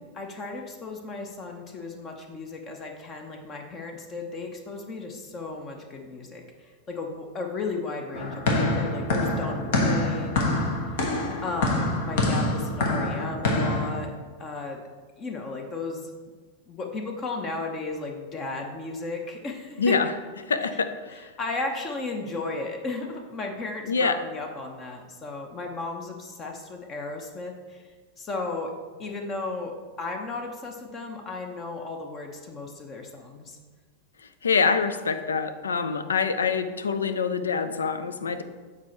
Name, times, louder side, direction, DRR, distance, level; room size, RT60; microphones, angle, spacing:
voice 1, 0.1-11.0 11.4-14.1 14.4-14.8 15.2-16.1 16.7-20.0 21.4-27.8 28.2-28.7 29.0-33.6, left 3 dB, 25° left, 3 dB, 0.8 m, -35 dB
sound 1, 8.1-14.0, left 2 dB, 55° left, 1.3 m, -26 dB
voice 2, 19.8-20.1 20.5-21.3 23.9-24.2 34.4-38.4, left 5 dB, 70° left, 10 dB, 0.5 m, -25 dB
7.3 x 4.8 x 4.4 m, 1.4 s
figure-of-eight pair, 90°, 0 cm